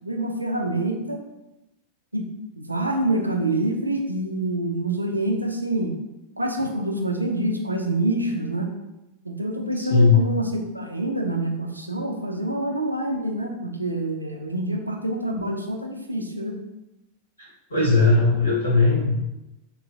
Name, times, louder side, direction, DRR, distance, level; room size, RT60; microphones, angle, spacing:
voice 1, 0.0-1.2 2.1-2.2 2.6-5.9 6.4-8.7 9.2-16.6, right 1 dB, 85° right, 3 dB, 0.5 m, -26 dB
voice 2, 9.8-10.2 17.4-19.1, left 3 dB, 75° left, -5 dB, 0.9 m, -19 dB
3.9 x 3.0 x 2.5 m, 0.93 s
figure-of-eight pair, 90°, 0 cm